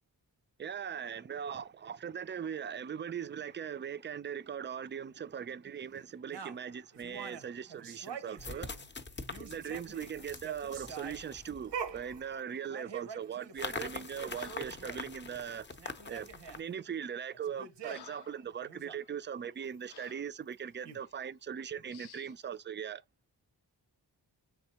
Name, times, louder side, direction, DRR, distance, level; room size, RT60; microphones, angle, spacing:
voice 1, 0.6-8.8 9.4-15.7 16.1-23.0, right 8 dB, 30° right, 0.3 m, -40 dB
sound 1, 6.3-8.9 9.2-15.0 15.4-15.5 15.7-16.6 17.3-18.2 18.6-19.0 20.5-20.6 20.8-21.0, right 7 dB, 85° right, 0.7 m, -45 dB
sound 2, 7.0-7.1 8.4-12.2 13.6-16.6, left 4 dB, 25° left, 0.6 m, -44 dB
Breathing, 13.8-14.0 14.3-14.9 15.9-16.2 16.8-17.0 17.4-18.5 18.9-19.1 19.9-20.3 21.0-21.2 21.9-22.4, left 9 dB, 70° left, 0.5 m, -55 dB
4.8 x 3.5 x 2.8 m
wide cardioid pair, 60°, 41 cm